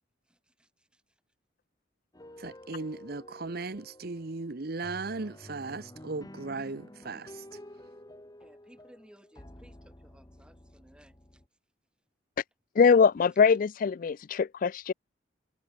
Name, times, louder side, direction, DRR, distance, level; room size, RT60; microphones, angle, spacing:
voice 1, 0.3-1.2 8.4-11.4, equal, 5° right, 4.9 m, -59 dB
sound 1, 2.1-11.5, left 1 dB, 20° left, 1.7 m, -50 dB
voice 2, 2.4-7.4, right 3 dB, 50° right, 0.9 m, -37 dB
voice 3, 12.8-14.9, left 5 dB, 45° left, 0.3 m, -22 dB
head